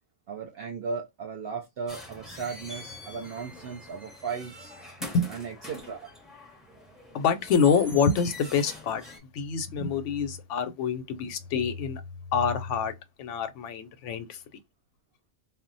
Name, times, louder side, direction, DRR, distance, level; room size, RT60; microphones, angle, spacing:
voice 1, 0.3-4.7 5.3-6.1, right 5 dB, 60° right, 0.7 m, -36 dB
sound 1, 1.9-9.2, left 1 dB, ahead, 0.5 m, -44 dB
voice 2, 7.1-9.0 9.3-12.0 12.3-12.9 13.2-14.4, left 6 dB, 75° left, 0.9 m, -26 dB
2.2 x 2.1 x 3.8 m
omnidirectional pair, 1.3 m